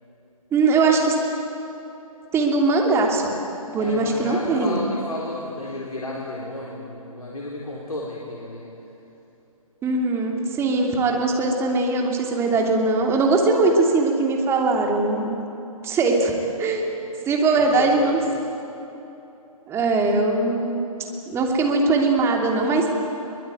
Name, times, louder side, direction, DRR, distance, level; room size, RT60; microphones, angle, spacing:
voice 1, 0.5-1.1 2.3-3.4 3.7-4.8 9.8-15.4 15.8-16.3 16.6-16.8 17.3-18.2 19.7-20.9 21.3-23.0, right 3 dB, 15° right, 1 dB, 3.0 m, -21 dB
voice 2, 3.8-8.7 17.6-18.2, left 2 dB, 80° left, -4 dB, 4.2 m, -33 dB
23.5 x 21.0 x 9.3 m, 3.0 s
figure-of-eight pair, 135°, 19 cm